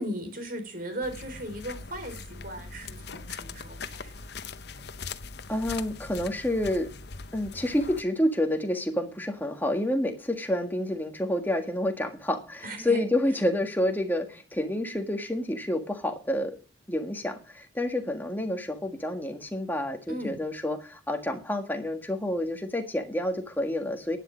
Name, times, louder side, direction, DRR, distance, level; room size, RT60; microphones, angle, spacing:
voice 1, 0.0-4.4 12.6-13.1 20.1-20.4, equal, 45° right, 6 dB, 4.0 m, -37 dB
sound 1, 1.0-8.0, left 4 dB, 60° left, 0.9 m, -41 dB
voice 2, 5.5-6.9 7.3-16.5 16.9-24.2, left 1 dB, 10° left, 5 dB, 1.7 m, -29 dB
11.5 x 10.0 x 5.2 m, 0.34 s
head